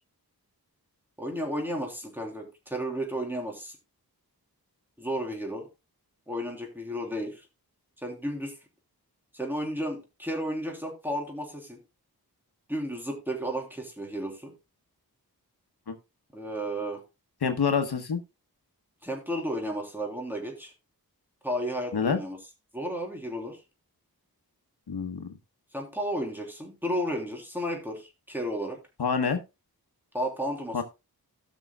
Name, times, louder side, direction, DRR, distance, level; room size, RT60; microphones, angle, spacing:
voice 1, 1.2-3.8 5.0-5.7 6.3-7.4 8.0-8.5 9.3-11.8 12.7-14.5 16.3-17.0 19.0-20.7 21.4-22.4 22.7-23.6 25.7-28.8 30.1-30.8, equal, 5° right, 0 dB, 3.2 m, -33 dB
voice 2, 17.4-18.2 21.9-22.2 24.9-25.3 29.0-29.4 30.7-30.8, left 6 dB, 85° left, 7 dB, 1.1 m, -27 dB
17.5 x 6.2 x 2.2 m, 0.26 s
wide cardioid pair, 70°, 38 cm